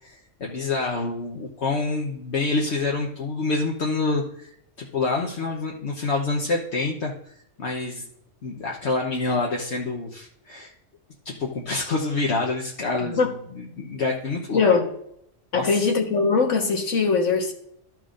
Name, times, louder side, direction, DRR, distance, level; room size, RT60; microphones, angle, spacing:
voice 1, 0.0-7.1 7.6-8.1 8.4-10.7 11.2-14.6 15.5-15.9, left 3 dB, 65° left, 1.3 m, -27 dB
voice 2, 14.5-14.9 15.5-17.5, left 4 dB, 80° left, 1.7 m, -21 dB
14.0 x 6.2 x 2.5 m
omnidirectional pair, 1.2 m